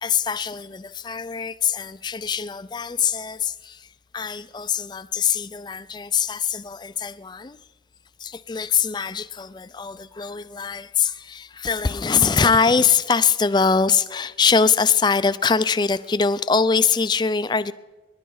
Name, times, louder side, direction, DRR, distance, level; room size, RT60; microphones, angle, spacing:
voice 1, 0.0-3.9 4.1-7.6 8.2-17.7, left 5 dB, 25° left, 0.4 m, -22 dB
28.5 x 11.5 x 3.9 m
head